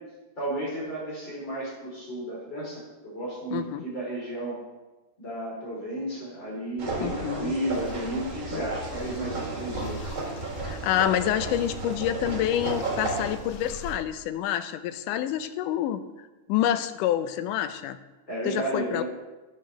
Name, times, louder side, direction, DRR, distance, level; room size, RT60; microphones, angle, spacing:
voice 1, 0.4-4.6 5.2-10.2 18.3-19.0, right 1 dB, 35° left, -6 dB, 4.5 m, -33 dB
voice 2, 3.5-3.8 7.0-7.5 8.5-8.6 10.6-16.0 16.5-18.0 18.5-19.0, left 11 dB, 80° left, 10 dB, 2.2 m, -27 dB
sound 1, 6.8-13.4, right 3 dB, 40° right, 2.7 m, -33 dB
sound 2, 7.7-14.0, left 3 dB, 60° left, 1.8 m, -43 dB
11.5 x 6.9 x 6.4 m, 1.1 s
omnidirectional pair, 3.7 m